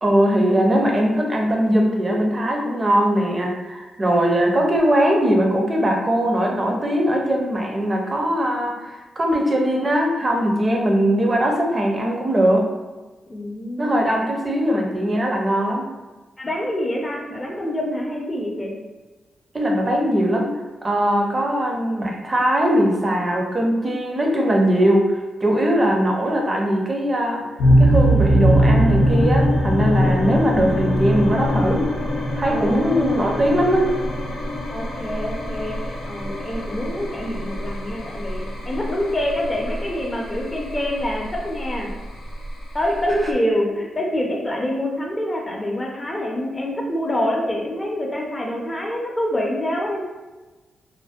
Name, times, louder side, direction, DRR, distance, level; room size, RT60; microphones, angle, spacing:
voice 1, 0.0-12.7 13.8-15.9 19.5-20.5 20.8-27.4 27.8-31.9 32.4-33.9 43.1-43.3, equal, 35° right, 0 dB, 0.5 m, -20 dB
voice 2, 13.3-14.2 16.4-18.7 25.6-25.9 32.5-33.6 34.7-35.8 36.1-41.9 42.7-50.0, left 1 dB, 25° left, -1 dB, 0.5 m, -26 dB
sound 1, 27.6-43.3, equal, 80° left, 0.4 m, -22 dB
2.5 x 2.1 x 2.3 m, 1.2 s
cardioid pair, 70°, 0 cm